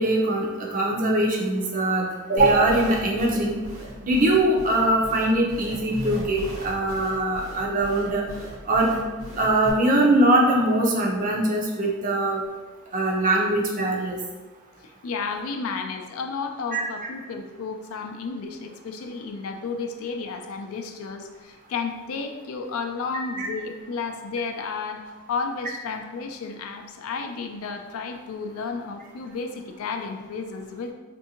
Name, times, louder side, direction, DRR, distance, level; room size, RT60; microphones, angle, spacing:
voice 1, 0.0-3.6 4.0-8.2 8.6-9.0 9.4-12.4 12.9-14.2 16.7-16.8 23.4-23.5, right 1 dB, 35° right, -2 dB, 0.5 m, -22 dB
sound 1, 2.4-9.7, equal, 65° right, 0.8 m, -37 dB
voice 2, 14.8-30.9, left 4 dB, 70° left, 5 dB, 0.4 m, -32 dB
3.5 x 2.6 x 2.8 m, 1.2 s
head